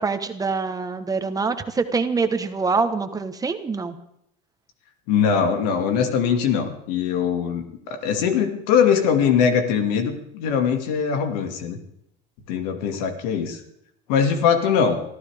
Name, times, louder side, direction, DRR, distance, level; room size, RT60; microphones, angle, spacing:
voice 1, 0.0-4.0, right 4 dB, 15° right, 7 dB, 1.2 m, -25 dB
voice 2, 5.1-11.8 12.5-13.6 14.1-15.0, left 7 dB, 85° left, 6 dB, 2.3 m, -21 dB
24.5 x 14.5 x 3.6 m, 0.76 s
supercardioid pair, 120°, 20 cm